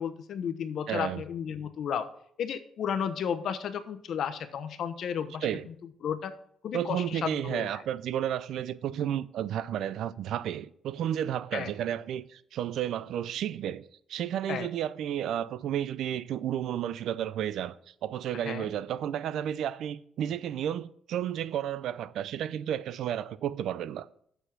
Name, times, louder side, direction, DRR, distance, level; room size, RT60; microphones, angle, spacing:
voice 1, 0.0-2.1 2.4-5.7 6.0-6.3 6.6-7.7 11.5-11.7 14.5-14.7 18.4-18.7, left 8 dB, 65° left, 0.9 m, -33 dB
voice 2, 0.9-1.2 5.4-5.7 6.7-24.1, right 10 dB, 75° right, 0.5 m, -32 dB
6.9 x 6.9 x 5.9 m
cardioid pair, 90°, 0 cm